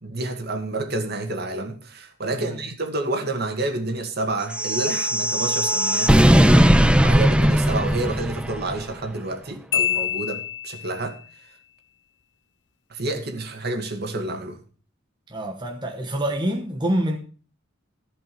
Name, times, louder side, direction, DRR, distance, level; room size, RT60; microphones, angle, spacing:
voice 1, 0.0-6.3 7.0-11.2 12.9-14.6, right 2 dB, 55° right, 2.1 m, -29 dB
sound 1, 4.5-8.8, equal, 5° right, 0.6 m, -18 dB
Marimba xylophone, 9.7-11.1, left 11 dB, 65° left, 0.7 m, -26 dB
voice 2, 15.3-17.2, right 1 dB, 25° right, 1.3 m, -26 dB
14.5 x 5.5 x 6.9 m
head